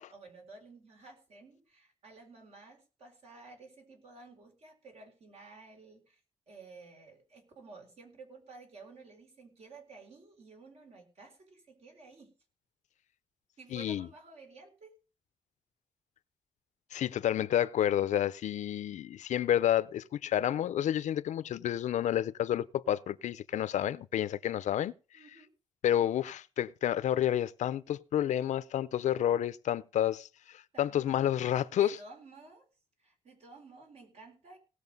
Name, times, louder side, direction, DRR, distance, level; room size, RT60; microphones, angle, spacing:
voice 1, 0.0-6.2 6.5-12.3 13.6-15.0 25.1-25.5 30.7-31.2 31.5-32.7 33.0-34.6, right 3 dB, 60° right, 4.3 m, -53 dB
voice 2, 13.7-14.1 16.9-24.9 25.8-32.0, left 11 dB, 80° left, 0.6 m, -30 dB
18.0 x 6.5 x 5.3 m
wide cardioid pair, 135°, 12 cm